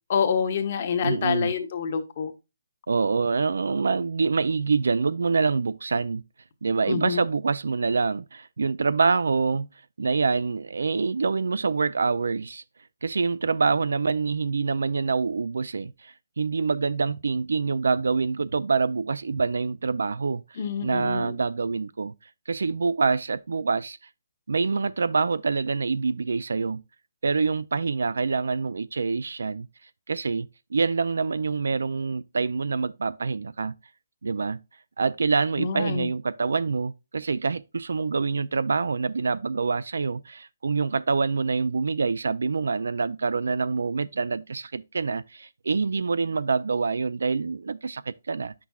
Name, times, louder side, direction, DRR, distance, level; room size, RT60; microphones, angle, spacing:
voice 1, 0.1-2.3 6.9-7.2 20.6-21.3 35.6-36.1, left 6 dB, 35° left, 1.1 m, -27 dB
voice 2, 1.0-1.5 2.9-6.2 6.6-9.7 10.0-12.6 13.0-20.4 20.8-22.1 22.5-24.0 24.5-26.8 27.2-29.7 30.1-33.7 34.2-34.6 35.0-48.5, right 4 dB, 75° right, 0.4 m, -26 dB
8.3 x 6.0 x 2.3 m
hypercardioid pair, 170°, 0 cm